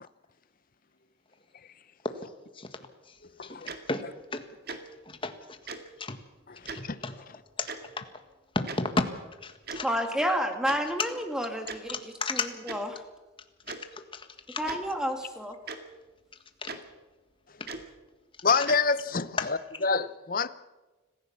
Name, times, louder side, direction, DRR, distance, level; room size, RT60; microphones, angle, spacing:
voice 1, 2.2-2.8 3.0-4.0 4.3-4.8 5.0-5.6 6.0-6.2 6.7-7.2 7.6-7.7 8.0-8.1 8.5-9.1 9.4-9.9 11.0-11.1 11.9-12.5 13.7-14.6 16.6-16.8 17.6-17.7 18.5-18.7 19.4-19.5 19.7-19.8, left 3 dB, 25° left, 8 dB, 1.7 m, -34 dB
voice 2, 3.4-3.7 6.9-7.0 18.4-20.5, left 5 dB, 40° left, 15 dB, 0.8 m, -27 dB
Tick-tock, 3.7-3.8 4.7-4.8 5.7-5.8 6.7-6.8 7.7-7.8 8.7-8.8 9.7-9.8 10.7-10.8 11.7-11.8 12.7-12.8 13.7-13.8 14.6-14.8 15.7-15.8 16.7-16.8 17.7-17.8 18.7-18.8, right 4 dB, 50° right, 1.9 m, -37 dB
voice 3, 9.8-12.0 12.3-13.0 14.6-15.6, equal, 5° right, 6 dB, 2.1 m, -30 dB
25.5 x 15.0 x 7.2 m, 1.2 s
head